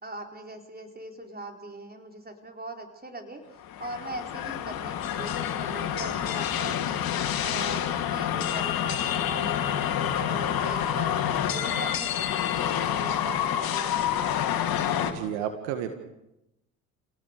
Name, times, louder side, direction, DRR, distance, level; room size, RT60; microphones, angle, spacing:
voice 1, 0.0-7.0 7.4-14.5, right 2 dB, 20° right, 4 dB, 4.3 m, -41 dB
sound 1, 3.6-15.1, left 10 dB, 55° left, 2.4 m, -28 dB
voice 2, 15.0-16.0, right 9 dB, 75° right, 8 dB, 1.9 m, -32 dB
29.0 x 18.0 x 6.6 m, 0.89 s
hypercardioid pair, 55°, 42 cm